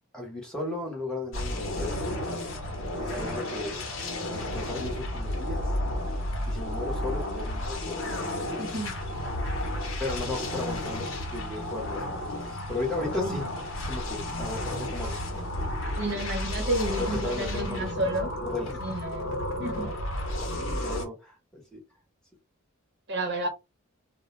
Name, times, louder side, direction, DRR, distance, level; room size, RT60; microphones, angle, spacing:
voice 1, 0.1-2.2 3.0-3.9 4.2-5.6 6.5-8.1 10.0-13.5 13.8-15.2 16.2-16.3 16.9-17.9 18.4-18.8 20.5-21.8, left 2 dB, 5° left, 0.9 m, -35 dB
sound 1, 1.3-21.1, left 1 dB, 70° left, 0.8 m, -32 dB
voice 2, 8.6-8.9 13.1-13.6 16.0-18.3 18.8-19.9 23.1-23.5, right 1 dB, 60° right, 0.9 m, -31 dB
2.2 x 2.1 x 3.0 m
head